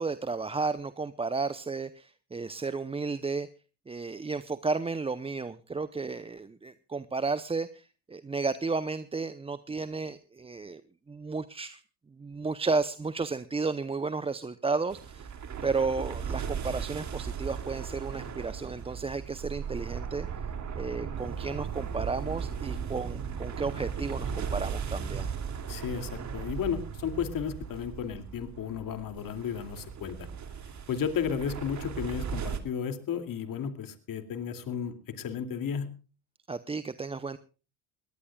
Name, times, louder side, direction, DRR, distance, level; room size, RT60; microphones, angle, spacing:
voice 1, 0.0-3.5 3.9-10.8 11.1-11.8 12.2-15.3 15.6-20.3 20.7-25.3 36.5-37.4, right 4 dB, 10° right, 14 dB, 0.7 m, -33 dB
sound 1, 14.9-32.6, right 7 dB, 40° right, 2.6 m, -37 dB
voice 2, 25.7-30.3 30.9-35.9, left 7 dB, 45° left, 8 dB, 2.6 m, -33 dB
22.0 x 18.0 x 2.3 m, 0.34 s
supercardioid pair, 90°, 46 cm